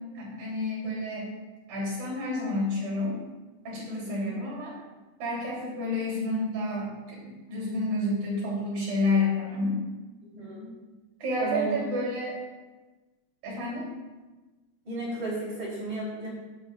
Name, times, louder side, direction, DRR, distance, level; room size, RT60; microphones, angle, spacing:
voice 1, 0.1-1.3 1.7-3.2 3.6-4.7 5.2-9.8 11.2-12.4 13.4-13.9, left 2 dB, 90° right, -5 dB, 5.1 m, -30 dB
voice 2, 3.9-4.4 10.3-10.7 11.4-11.9 14.8-16.3, right 2 dB, 35° right, -6 dB, 4.2 m, -34 dB
16.0 x 9.1 x 2.5 m, 1.2 s
omnidirectional pair, 3.9 m